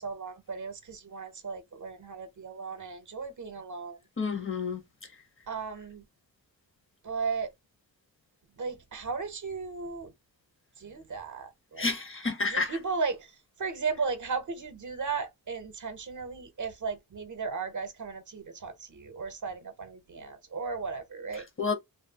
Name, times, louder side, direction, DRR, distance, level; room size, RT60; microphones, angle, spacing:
voice 1, 0.0-4.0 5.5-6.0 7.0-7.5 8.6-10.1 10.8-11.9 12.4-13.3 13.6-21.4, right 5 dB, 55° right, 0.6 m, -35 dB
voice 2, 4.2-4.8 11.8-12.8 21.6-21.8, left 4 dB, 35° left, 0.8 m, -29 dB
2.6 x 2.4 x 2.7 m
wide cardioid pair, 105°, 36 cm